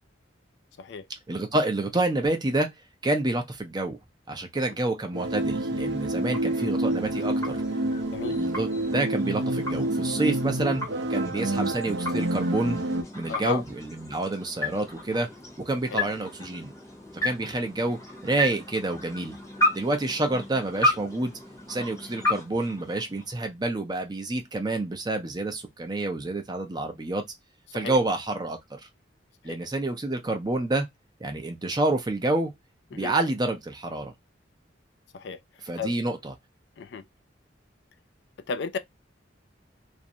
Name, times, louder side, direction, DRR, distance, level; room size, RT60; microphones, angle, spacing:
voice 1, 1.3-2.7 3.0-4.0 4.3-7.6 8.3-10.8 11.1-12.8 13.1-15.3 15.6-16.7 17.2-19.3 19.7-21.3 21.7-27.2 27.7-28.8 29.4-30.9 31.2-32.5 32.9-34.1 35.6-36.3, right 2 dB, 20° right, 0.5 m, -28 dB
sound 1, 5.1-13.0, right 1 dB, 65° right, 0.6 m, -28 dB
sound 2, 5.8-23.5, left 1 dB, 15° left, 0.8 m, -34 dB
voice 2, 13.3-13.6 15.9-16.0 27.7-28.0 29.4-29.6 32.9-33.1 35.1-35.4 35.8-35.9 36.8-37.0 38.5-38.8, left 5 dB, 65° left, 0.4 m, -33 dB
2.5 x 2.1 x 2.6 m
head